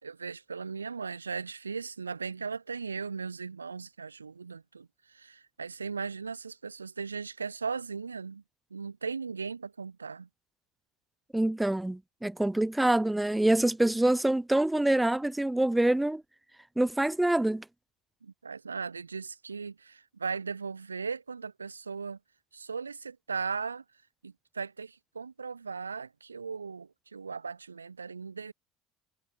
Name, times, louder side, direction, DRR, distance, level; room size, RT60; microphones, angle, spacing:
voice 1, 0.0-8.4 8.7-10.3 18.2-22.2 22.5-23.8 24.2-28.5, right 5 dB, 85° right, 3.9 m, -38 dB
voice 2, 11.3-16.2 16.8-17.6, right 1 dB, 5° right, 5.6 m, -26 dB
figure-of-eight pair, 65°, 0 cm